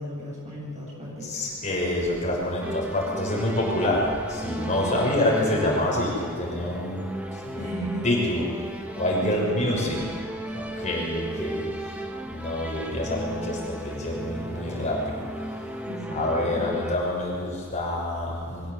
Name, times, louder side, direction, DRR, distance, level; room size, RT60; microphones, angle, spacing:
voice 1, 0.0-1.3 4.8-6.0 7.6-8.2 9.1-10.0 10.5-10.7 15.9-16.6, equal, 35° right, -4 dB, 7.9 m, -35 dB
voice 2, 1.2-7.7 8.0-8.5 9.0-10.1 10.5-12.0 12.3-15.2 16.1-18.7, left 1 dB, 35° left, -3 dB, 6.3 m, -27 dB
sound 1, 2.6-16.9, equal, 5° right, 1.5 m, -35 dB
24.0 x 16.0 x 8.1 m, 2.2 s
head